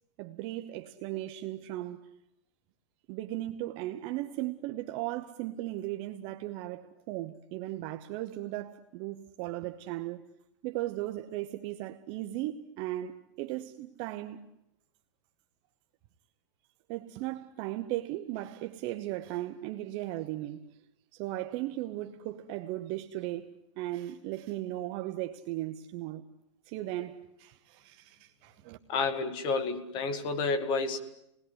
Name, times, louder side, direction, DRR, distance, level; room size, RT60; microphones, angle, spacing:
voice 1, 0.2-2.1 3.1-10.3 10.6-14.5 16.9-20.8 21.1-26.3 26.6-28.8, right 15 dB, 35° right, 1.0 m, -37 dB
voice 2, 28.9-31.0, left 4 dB, 30° left, 2.1 m, -30 dB
29.0 x 20.0 x 9.7 m
supercardioid pair, 155°, 15 cm